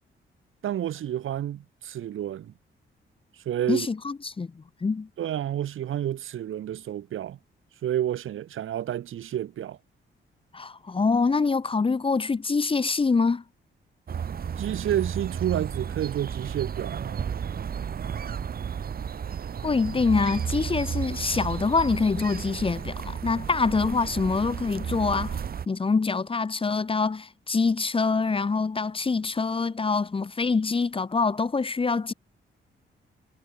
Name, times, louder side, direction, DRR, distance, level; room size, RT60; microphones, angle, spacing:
voice 1, 0.6-2.5 3.5-3.9 5.2-7.4 7.8-9.8 14.6-17.3, right 11 dB, 75° right, 1.8 m, -30 dB
voice 2, 3.7-5.1 10.5-13.4 19.6-25.4 25.7-32.1, left 4 dB, 25° left, 1.2 m, -25 dB
sound 1, 14.1-25.7, right 7 dB, 45° right, 1.3 m, -33 dB
cardioid pair, 120°, 21 cm